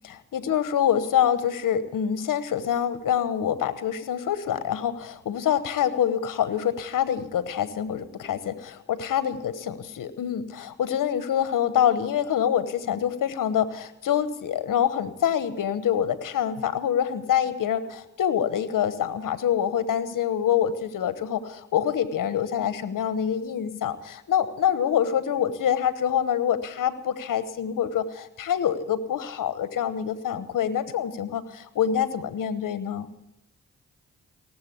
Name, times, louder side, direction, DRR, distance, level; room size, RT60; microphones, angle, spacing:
voice 1, 0.0-33.1, left 9 dB, 80° left, 13 dB, 1.1 m, -26 dB
17.5 x 7.7 x 9.9 m, 0.87 s
supercardioid pair, 40°, 32 cm